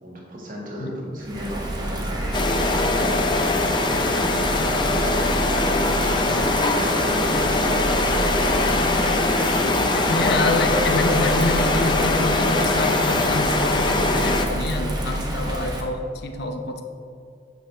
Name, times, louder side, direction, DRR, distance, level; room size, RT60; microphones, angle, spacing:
voice 1, 0.0-2.9 3.8-4.2 5.5-9.2, equal, 50° right, -3 dB, 1.9 m, -35 dB
Bird vocalization bird call bird song / Rain, 1.2-15.8, right 1 dB, 20° right, 1.0 m, -29 dB
sound 1, 2.3-14.5, left 2 dB, 25° left, 0.6 m, -22 dB
voice 2, 10.1-16.8, left 2 dB, 60° left, 5 dB, 0.8 m, -26 dB
9.1 x 7.4 x 3.4 m, 2.5 s
head